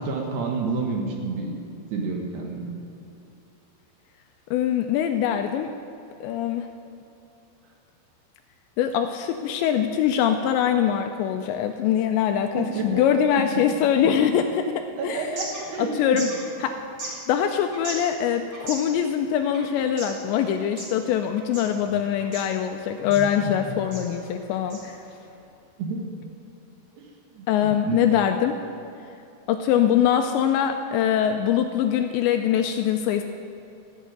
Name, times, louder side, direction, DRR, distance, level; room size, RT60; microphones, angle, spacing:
voice 1, 0.0-1.6 1.9-2.7 12.6-13.0 13.5-13.6 15.0-16.2 21.9-22.0 23.1-23.8 25.8-26.1 27.0-27.1 27.3-28.0, right 4 dB, 65° right, 1 dB, 3.3 m, -30 dB
voice 2, 4.5-5.7 6.2-6.7 8.8-14.7 15.0-15.3 15.8-16.3 16.6-16.7 17.1-25.0 27.5-28.6 29.5-33.2, left 9 dB, 80° left, 6 dB, 2.6 m, -23 dB
sound 1, 15.1-25.4, right 2 dB, 35° right, 2.4 m, -40 dB
14.5 x 8.1 x 8.9 m, 2.7 s
omnidirectional pair, 5.5 m